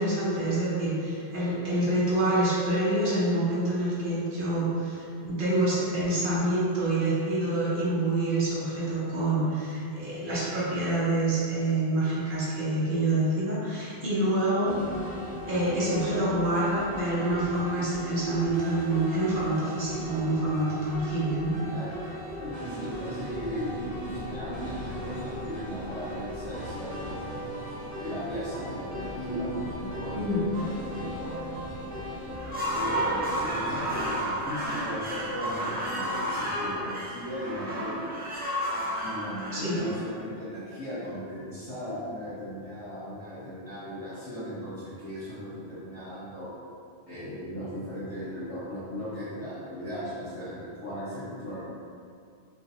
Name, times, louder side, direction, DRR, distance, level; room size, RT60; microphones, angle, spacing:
voice 1, 0.0-14.8 15.5-21.6 30.1-30.4 39.5-39.8, right 1 dB, 55° right, -8 dB, 0.9 m, -27 dB
sound 1, 14.7-34.2, equal, 35° left, 0.9 m, -39 dB
voice 2, 21.6-22.0 22.4-27.5 28.0-32.1 32.7-38.1 39.0-46.5 47.1-51.6, equal, 15° left, -16 dB, 1.1 m, -37 dB
sound 2, 23.4-36.7, equal, 65° left, 0.9 m, -43 dB
sound 3, 32.3-40.5, right 1 dB, 15° right, 0.3 m, -32 dB
3.1 x 2.5 x 2.8 m, 2.3 s
omnidirectional pair, 1.1 m